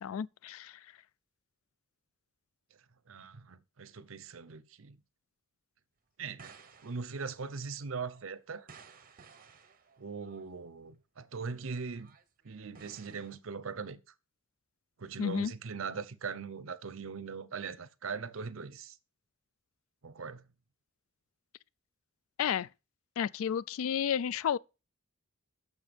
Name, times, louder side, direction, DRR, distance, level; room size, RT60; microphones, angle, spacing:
voice 1, 0.0-0.8 15.2-15.5 22.4-22.7 23.2-24.6, left 8 dB, 75° left, 0.3 m, -32 dB
voice 2, 3.1-5.0 6.2-6.5 6.8-8.7 10.0-12.1 12.4-14.0 15.0-19.0 20.0-20.4, right 5 dB, 70° right, 0.7 m, -40 dB
sound 1, 6.4-10.4 11.4-13.4, right 5 dB, 40° right, 0.9 m, -57 dB
7.1 x 6.4 x 5.2 m
head